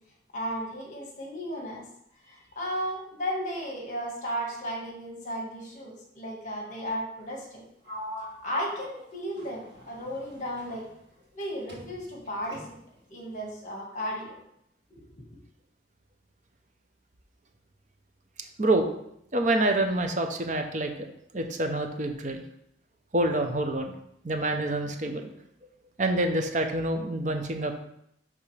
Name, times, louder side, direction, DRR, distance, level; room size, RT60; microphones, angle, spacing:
voice 1, 0.3-1.8 2.2-7.7 8.4-10.9 11.3-12.7 13.1-14.4 14.9-15.1, equal, 40° left, -1 dB, 1.7 m, -34 dB
Sliding door, 7.8-11.4 11.7-13.0, equal, 55° right, 2.2 m, -44 dB
voice 2, 18.6-18.9 19.3-21.1 21.3-22.4 23.1-23.9 24.2-25.3 26.0-27.8, right 1 dB, 40° right, 5 dB, 0.7 m, -27 dB
10.5 x 3.6 x 3.3 m, 0.75 s
head